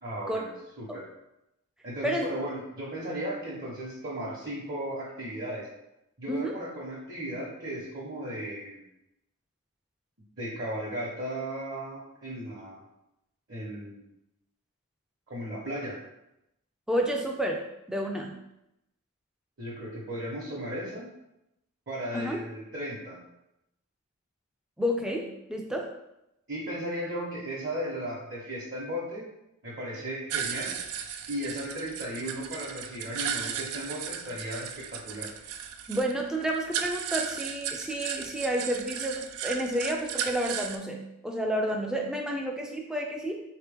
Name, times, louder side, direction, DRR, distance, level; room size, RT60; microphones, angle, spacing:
voice 1, 0.0-0.5 0.8-1.0 1.8-5.7 6.2-8.9 10.4-12.8 13.5-14.0 15.3-16.0 19.6-21.1 21.9-23.2 26.5-29.2 29.6-30.7 31.3-35.3, equal, 45° right, -6 dB, 0.9 m, -36 dB
voice 2, 16.9-17.6 17.9-18.3 22.1-22.4 24.8-25.9 35.9-43.4, right 1 dB, 5° right, 0 dB, 0.3 m, -30 dB
sound 1, 30.3-40.8, right 8 dB, 80° right, 0.4 m, -35 dB
4.0 x 2.9 x 3.4 m, 0.87 s
head